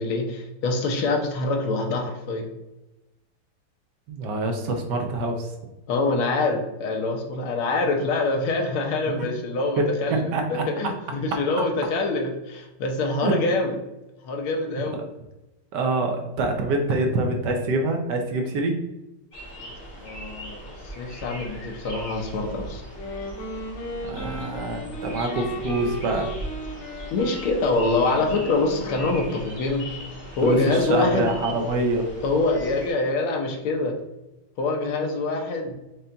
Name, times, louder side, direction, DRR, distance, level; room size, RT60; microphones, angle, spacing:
voice 1, 0.0-2.5 5.9-13.8 14.2-15.0 19.6-19.7 20.0-22.8 27.1-29.9 30.4-31.3 32.2-34.0 34.6-35.8, left 3 dB, 85° left, 2 dB, 1.6 m, -25 dB
voice 2, 4.1-5.5 9.1-9.3 9.8-9.9 10.1-10.6 13.2-13.3 15.7-18.8 24.0-26.3 30.4-32.1, right 2 dB, 70° right, 3 dB, 1.2 m, -25 dB
sound 1, 19.3-32.9, equal, 40° left, 0.9 m, -39 dB
Wind instrument woodwind instrument, 22.8-29.4, left 1 dB, 65° left, 1.3 m, -35 dB
5.3 x 2.7 x 3.4 m, 0.98 s
omnidirectional pair, 2.2 m